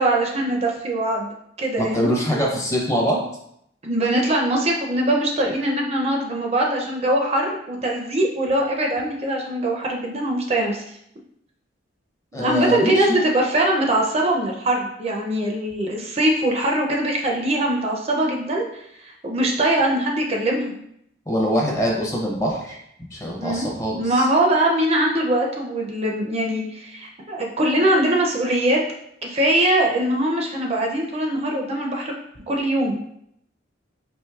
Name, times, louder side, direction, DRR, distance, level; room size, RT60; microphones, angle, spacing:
voice 1, 0.0-2.2 3.8-10.8 12.4-18.7 19.0-20.7 23.4-23.7 23.9-28.8 29.2-32.1 32.5-33.0, right 1 dB, 35° right, 0 dB, 0.4 m, -22 dB
voice 2, 1.8-3.2 12.3-13.2 21.3-22.8 23.1-24.3, equal, 15° left, -1 dB, 0.6 m, -23 dB
4.5 x 3.0 x 2.3 m, 0.73 s
head